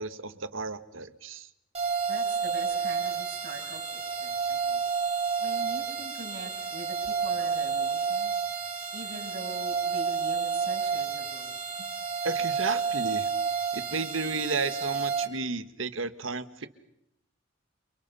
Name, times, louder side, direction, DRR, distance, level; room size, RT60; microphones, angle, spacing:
voice 1, 0.0-1.5 12.2-13.3 13.7-16.7, right 4 dB, 85° right, 12 dB, 1.7 m, -33 dB
sound 1, 1.7-15.3, right 6 dB, 30° right, 4.5 m, -30 dB
voice 2, 2.1-4.8 5.4-8.5 8.9-11.5 11.8-11.9, right 2 dB, 55° right, 1 dB, 7.3 m, -43 dB
30.0 x 28.5 x 5.7 m, 0.78 s
head